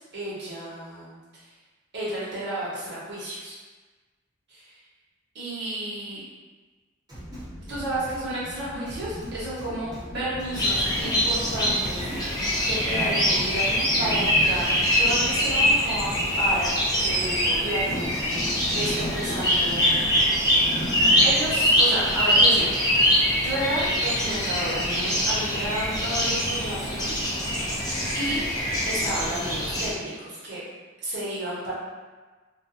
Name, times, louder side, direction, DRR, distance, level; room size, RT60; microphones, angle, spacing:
voice 1, 0.0-1.5 1.9-3.6 5.3-6.2 7.7-16.1 16.4-18.1 18.7-20.2 21.2-22.7 23.4-27.2 28.1-28.4 28.8-30.6 31.0-31.7, right 1 dB, 60° right, -9 dB, 1.0 m, -32 dB
sound 1, 7.1-22.6, equal, 40° left, 0.9 m, -37 dB
sound 2, 7.1-8.2 8.9-10.0 10.4-11.9 12.6-13.8 14.2-14.6, right 1 dB, 20° right, 0.8 m, -42 dB
sound 3, 10.5-29.9, equal, 20° left, 0.5 m, -23 dB
2.4 x 2.2 x 2.6 m, 1.3 s
head